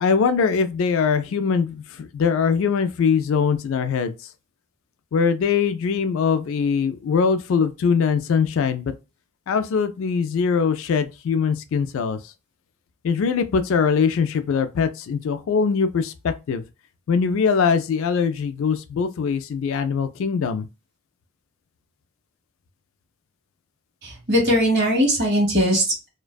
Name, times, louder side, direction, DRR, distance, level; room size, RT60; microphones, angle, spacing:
voice 1, 0.0-4.1 5.1-8.9 9.5-12.2 13.0-16.6 17.1-20.6, left 6 dB, 60° left, 0.3 m, -22 dB
voice 2, 24.0-26.1, equal, 50° right, 1.1 m, -20 dB
2.5 x 2.2 x 2.2 m
head